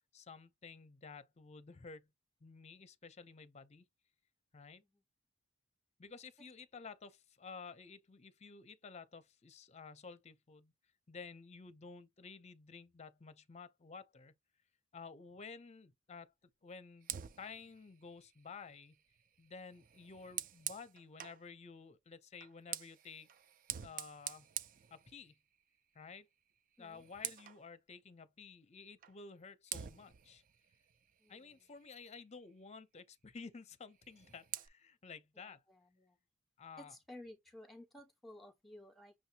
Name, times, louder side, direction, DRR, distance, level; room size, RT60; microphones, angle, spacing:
voice 1, 0.1-2.1 2.4-3.8 4.5-4.8 6.0-10.7 11.1-14.3 14.9-16.3 16.6-17.1 17.4-19.0 19.4-23.3 23.8-24.5 24.9-25.4 25.9-26.3 26.8-30.4 31.3-35.6 36.6-37.0, left 5 dB, 30° left, 0.6 m, -52 dB
Fire, 17.0-21.5 22.3-25.6 26.0-26.2 26.6-27.6 29.0-29.2 29.7-32.0 33.9-34.7, right 11 dB, 40° right, 0.4 m, -47 dB
voice 2, 35.3-36.2 36.8-39.1, left 1 dB, ahead, 1.3 m, -55 dB
6.2 x 2.7 x 2.8 m
head